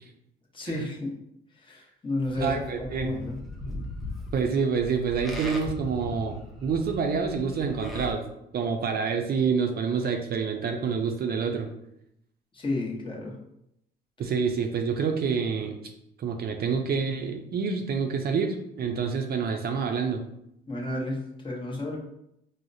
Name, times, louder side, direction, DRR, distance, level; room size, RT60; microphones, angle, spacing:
voice 1, 0.5-1.1 1.5-3.4 12.5-13.4 20.7-22.0, left 2 dB, 25° left, -2 dB, 0.9 m, -32 dB
Livestock farm animals working animals, 2.2-8.1, left 1 dB, ahead, 0.7 m, -38 dB
voice 2, 2.4-3.1 4.3-8.2 8.5-11.7 14.2-15.8 16.2-20.2, right 5 dB, 50° right, 4 dB, 0.5 m, -27 dB
4.8 x 2.0 x 2.6 m, 0.80 s
cardioid pair, 90°, 20 cm